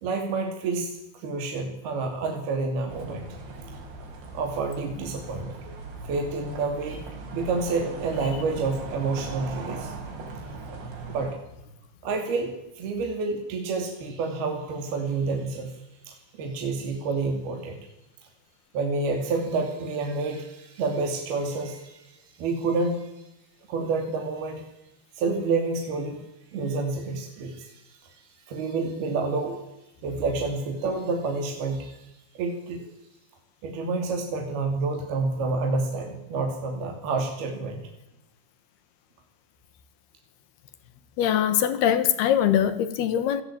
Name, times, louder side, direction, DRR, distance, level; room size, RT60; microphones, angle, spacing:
voice 1, 0.0-3.3 4.3-5.7 6.0-7.0 7.3-9.9 11.1-11.4 12.0-17.8 18.7-23.2 23.7-24.7 25.1-26.2 26.5-29.6 30.0-32.9 33.6-37.9, right 3 dB, 60° right, 4.7 m, -29 dB
sound 1, 2.9-11.3, right 3 dB, 85° right, 7.1 m, -39 dB
voice 2, 41.2-43.4, left 10 dB, 70° left, 3.4 m, -22 dB
28.5 x 18.5 x 8.8 m
omnidirectional pair, 5.1 m